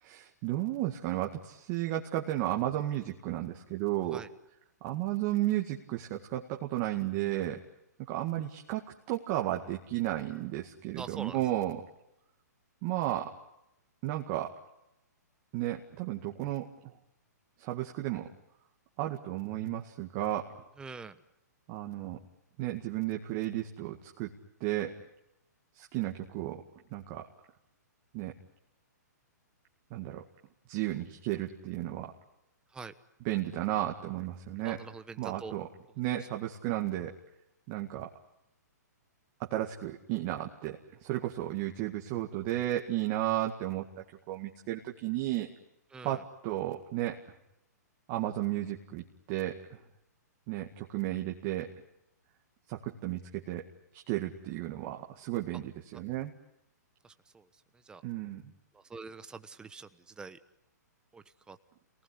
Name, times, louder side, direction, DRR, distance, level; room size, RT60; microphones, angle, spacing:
voice 1, 0.0-4.2 4.8-7.6 8.1-11.8 12.8-13.3 14.0-14.6 15.5-16.7 17.6-18.3 19.0-20.7 21.7-22.2 22.6-24.3 24.6-24.9 25.7-26.6 26.9-27.3 28.1-28.3 29.9-30.2 30.7-32.1 33.3-34.8 35.2-35.7 36.0-37.1 37.7-38.1 39.4-43.9 44.3-45.5 46.0-47.2 48.1-49.8 50.5-51.7 52.7-53.7 53.9-56.3 58.0-58.5, right 14 dB, 35° right, 2 dB, 2.0 m, -33 dB
voice 2, 10.9-11.4 20.8-21.2 32.7-32.9 34.6-35.5 45.9-46.2 57.0-58.0 58.7-60.4 61.1-61.6, right 4 dB, 10° right, 11 dB, 1.1 m, -45 dB
28.5 x 19.5 x 9.9 m, 0.85 s
hypercardioid pair, 150°, 10 cm